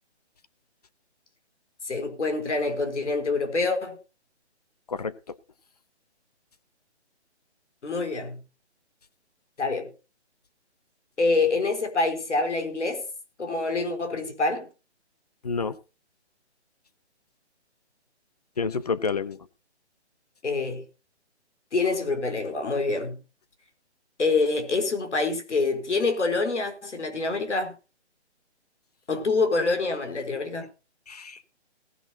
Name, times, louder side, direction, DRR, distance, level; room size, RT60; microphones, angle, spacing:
voice 1, 1.8-4.0 7.8-8.4 9.6-9.9 11.2-13.0 13.4-14.7 20.4-20.9 21.7-23.2 24.2-27.8 29.1-30.7, left 3 dB, 85° left, 4.1 m, -26 dB
voice 2, 4.9-5.3 15.4-15.8 18.6-19.5 31.1-31.4, left 5 dB, 35° left, 0.9 m, -29 dB
18.5 x 10.5 x 2.8 m
hypercardioid pair, 175°, 34 cm